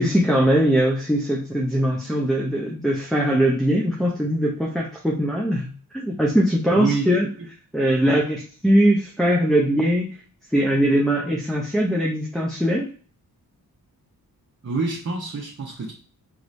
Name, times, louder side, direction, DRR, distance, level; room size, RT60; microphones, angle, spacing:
voice 1, 0.0-7.3 7.7-10.1 10.5-12.9, equal, ahead, -4 dB, 0.6 m, -21 dB
voice 2, 6.8-7.1 14.6-15.9, right 4 dB, 40° right, -3 dB, 0.9 m, -26 dB
4.8 x 3.2 x 2.6 m, 0.43 s
wide cardioid pair, 105°, 38 cm